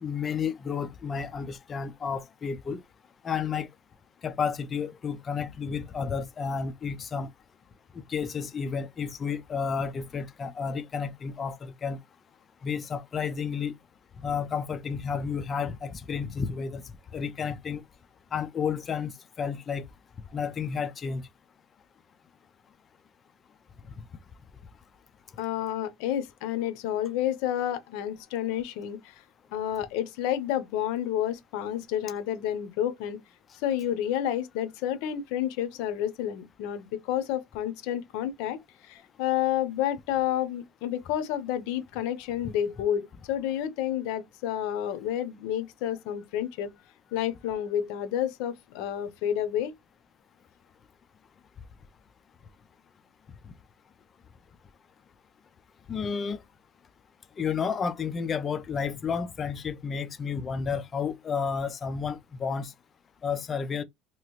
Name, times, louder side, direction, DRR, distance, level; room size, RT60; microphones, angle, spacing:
voice 1, 0.0-2.8 3.2-3.7 4.2-7.3 7.9-12.0 12.6-13.7 14.2-16.8 17.1-17.8 18.3-19.8 20.3-21.2 23.9-24.0 55.9-56.4 57.4-62.7 63.2-63.8, left 6 dB, 30° left, 0.4 m, -31 dB
voice 2, 25.4-29.1 29.5-33.2 33.6-46.7 47.1-49.7, left 11 dB, 85° left, 0.6 m, -30 dB
2.9 x 2.4 x 3.0 m
cardioid pair, 135°, 0 cm